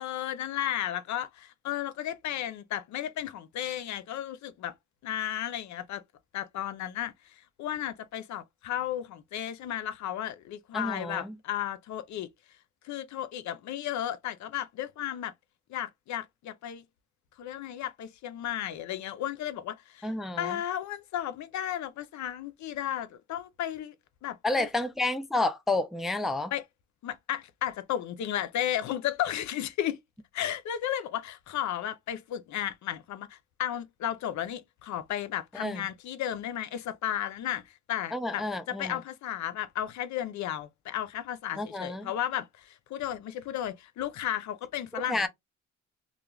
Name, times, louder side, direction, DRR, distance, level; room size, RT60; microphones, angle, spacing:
voice 1, 0.0-4.7 5.0-6.0 6.3-7.1 7.6-12.3 12.9-15.3 15.7-16.8 17.4-20.1 20.4-23.9 24.2-24.7 26.5-26.6 27.0-30.0 30.3-37.6 37.9-42.5 42.9-45.3, left 11 dB, 70° left, 0.5 m, -34 dB
voice 2, 10.7-11.4 20.0-20.6 24.4-26.5 35.5-35.9 38.1-39.0 41.6-42.1 45.1-45.3, left 2 dB, ahead, 0.3 m, -30 dB
2.4 x 2.3 x 3.0 m
cardioid pair, 90°, 30 cm